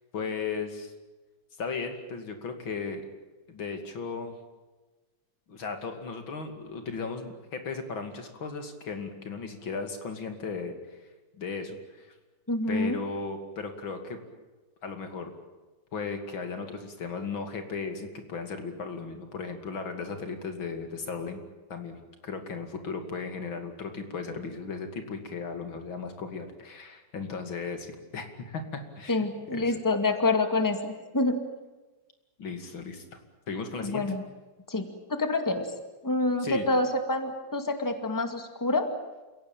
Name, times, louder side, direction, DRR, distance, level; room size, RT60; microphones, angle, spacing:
voice 1, 0.1-0.9 1.6-3.0 3.5-4.3 5.5-10.7 11.4-12.1 12.7-14.2 14.8-15.3 15.9-21.4 21.7-29.8 32.4-33.0 33.5-34.1 36.4-36.7, left 4 dB, 85° left, 6 dB, 3.3 m, -36 dB
voice 2, 12.5-13.0 29.1-31.4 33.8-34.2 34.7-35.7 36.0-38.9, left 2 dB, 10° left, 7 dB, 2.0 m, -27 dB
29.0 x 17.0 x 9.1 m, 1.2 s
omnidirectional pair, 2.1 m